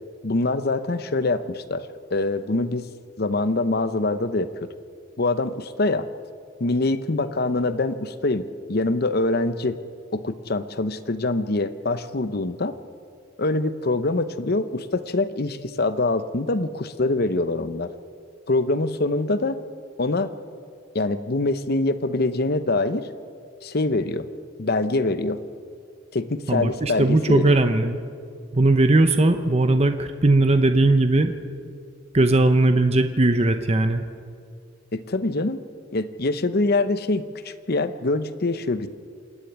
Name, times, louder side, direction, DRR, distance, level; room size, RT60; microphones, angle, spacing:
voice 1, 0.2-2.9 3.2-4.7 5.2-6.1 6.6-9.8 10.1-12.7 13.4-17.9 18.5-19.6 20.0-20.3 20.9-23.1 23.6-24.3 24.6-25.4 26.1-27.6 34.9-35.6 35.9-38.9, left 2 dB, 50° left, 12 dB, 0.9 m, -24 dB
voice 2, 26.5-28.0 28.5-31.3 32.1-34.0, right 2 dB, 30° right, 7 dB, 0.8 m, -19 dB
27.0 x 10.0 x 9.4 m, 2.3 s
head